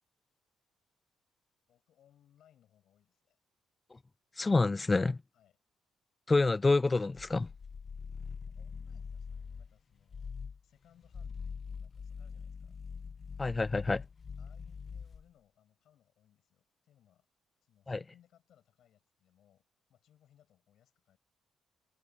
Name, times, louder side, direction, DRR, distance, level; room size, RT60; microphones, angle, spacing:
voice 1, 1.7-3.4 5.3-5.6 8.5-12.8 14.4-17.3 17.6-21.2, left 11 dB, 70° left, 7.8 m, -67 dB
voice 2, 4.4-5.2 6.3-7.5 13.4-14.0 17.9-18.0, left 3 dB, 25° left, 0.3 m, -27 dB
sound 1, 7.2-9.7 10.1-10.6 11.0-15.3, left 5 dB, 40° left, 0.7 m, -43 dB
cardioid pair, 90°, 0 cm